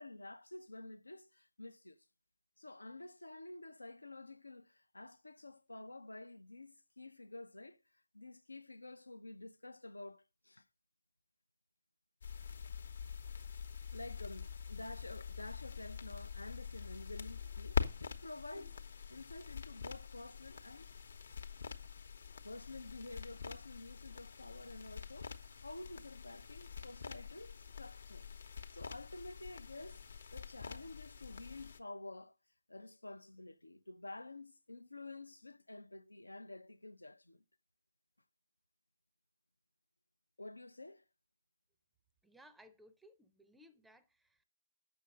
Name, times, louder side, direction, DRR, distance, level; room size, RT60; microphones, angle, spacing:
voice 1, 0.0-2.1 2.6-10.7 13.9-20.9 22.4-28.3 28.7-32.4 32.7-37.4 40.4-41.0, left 2 dB, 80° left, 0.5 m, -50 dB
sound 1, 12.2-31.8, left 6 dB, 55° left, 0.9 m, -45 dB
voice 2, 42.2-44.4, equal, 5° right, 0.5 m, -62 dB
6.8 x 6.4 x 6.4 m
figure-of-eight pair, 140°, 0 cm